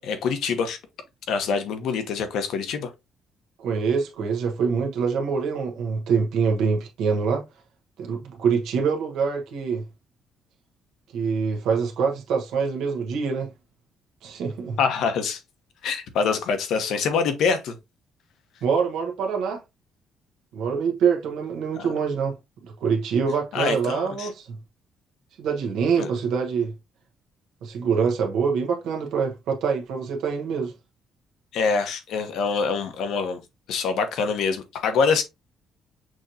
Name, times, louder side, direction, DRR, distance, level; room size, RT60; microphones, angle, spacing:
voice 1, 0.0-0.8 1.3-2.9 14.8-15.4 15.8-17.8 21.8-21.9 23.5-24.3 26.0-26.1 31.5-33.4 33.7-35.2, left 5 dB, 70° left, 1.0 m, -25 dB
voice 2, 3.6-7.4 8.0-9.8 11.1-13.5 14.2-14.8 18.6-19.6 20.5-22.4 22.8-24.5 25.4-26.7 27.6-30.7, right 6 dB, 75° right, 1.2 m, -25 dB
6.2 x 3.0 x 2.7 m
cardioid pair, 175°, 0 cm